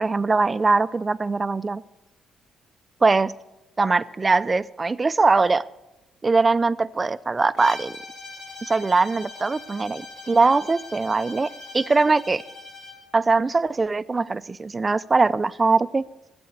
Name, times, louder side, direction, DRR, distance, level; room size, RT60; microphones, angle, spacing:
voice 1, 0.0-1.8 3.0-3.3 3.8-5.6 6.2-8.0 8.6-11.5 11.7-12.4 13.1-16.0, right 3 dB, 25° right, 16 dB, 0.4 m, -21 dB
Bowed string instrument, 7.6-13.0, left 3 dB, 85° left, 4.3 m, -41 dB
13.5 x 7.7 x 8.4 m, 0.99 s
cardioid pair, 90°, 0 cm